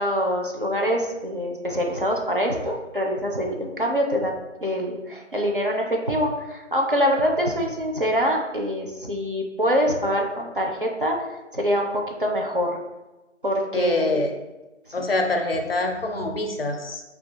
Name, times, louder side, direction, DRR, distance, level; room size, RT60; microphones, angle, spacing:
voice 1, 0.0-11.2 11.5-12.8 13.4-14.2 15.0-15.1, equal, 45° right, 0 dB, 0.4 m, -25 dB
voice 2, 13.7-14.3 14.9-17.0, left 2 dB, 50° left, 3 dB, 0.5 m, -25 dB
3.1 x 2.3 x 4.2 m, 1.1 s
figure-of-eight pair, 160°, 37 cm